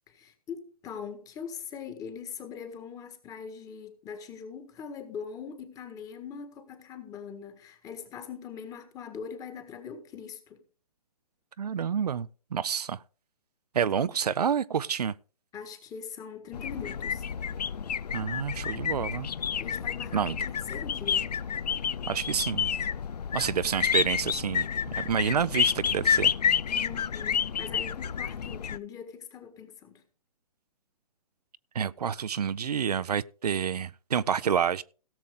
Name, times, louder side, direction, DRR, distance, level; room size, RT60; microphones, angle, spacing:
voice 1, 0.1-10.6 15.5-17.2 19.6-21.3 26.7-30.0, left 7 dB, 15° left, 1.6 m, -42 dB
voice 2, 11.6-13.0 13.7-15.1 18.1-19.3 20.1-20.4 22.1-22.7 23.3-24.7 24.9-26.3 31.7-34.8, right 7 dB, 80° right, 0.6 m, -28 dB
sound 1, 16.5-28.8, left 7 dB, 90° left, 0.5 m, -30 dB
17.0 x 7.3 x 3.7 m
hypercardioid pair, 140°, 20 cm